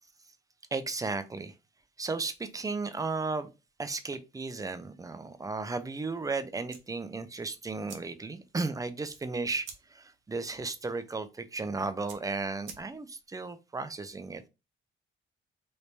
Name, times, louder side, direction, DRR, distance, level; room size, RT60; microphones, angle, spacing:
voice 1, 0.7-1.5 2.0-3.5 3.8-14.4, right 3 dB, 15° right, 11 dB, 0.5 m, -34 dB
sound 1, 6.7-13.3, right 6 dB, 75° right, 0.9 m, -52 dB
3.1 x 2.6 x 3.3 m, 0.27 s
cardioid pair, 90°, 20 cm